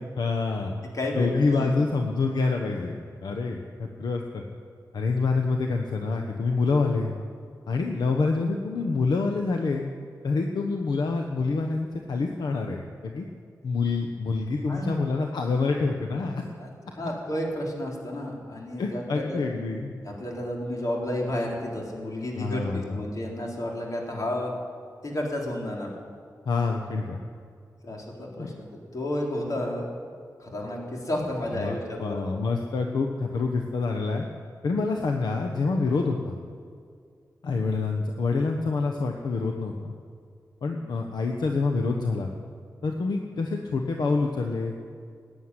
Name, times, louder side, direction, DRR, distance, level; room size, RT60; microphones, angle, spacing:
voice 1, 0.0-0.8 1.2-4.4 4.9-7.1 7.7-9.9 10.2-13.2 13.6-16.4 18.8-20.0 22.4-23.0 26.4-27.2 28.4-28.5 31.5-34.2 34.6-36.3 37.4-39.9 40.6-42.3 42.8-44.8, left 4 dB, 80° left, 2 dB, 1.1 m, -27 dB
voice 2, 0.9-1.7 14.7-15.0 16.6-19.4 20.0-24.5 25.0-25.9 27.8-29.9 30.4-32.2, left 1 dB, 55° left, -1 dB, 3.7 m, -31 dB
15.0 x 9.3 x 9.8 m, 2.2 s
cardioid pair, 65°, 7 cm